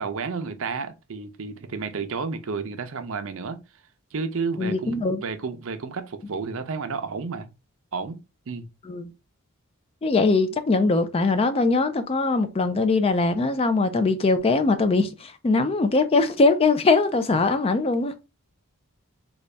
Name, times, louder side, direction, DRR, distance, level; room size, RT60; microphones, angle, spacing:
voice 1, 0.0-3.6 4.1-7.5 7.9-8.2 8.5-8.7, right 4 dB, 65° right, 0.5 m, -31 dB
voice 2, 4.6-5.2 8.9-9.0 10.0-18.1, left 3 dB, 25° left, 0.4 m, -21 dB
3.9 x 2.3 x 3.2 m
head